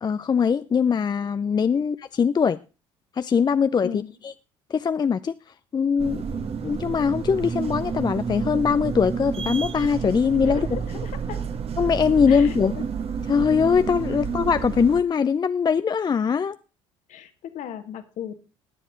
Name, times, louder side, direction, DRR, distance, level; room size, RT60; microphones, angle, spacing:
voice 1, 0.0-2.6 3.2-4.0 4.7-5.4 5.7-6.2 6.6-10.7 11.8-12.7 13.3-16.6, left 6 dB, 30° left, 0.5 m, -21 dB
voice 2, 3.8-4.2 10.5-11.4 12.3-12.9 17.1-18.4, left 9 dB, 60° left, 1.7 m, -37 dB
sound 1, 6.0-15.0, right 6 dB, 40° right, 1.3 m, -30 dB
20.0 x 7.4 x 3.9 m
hypercardioid pair, 60°, 15 cm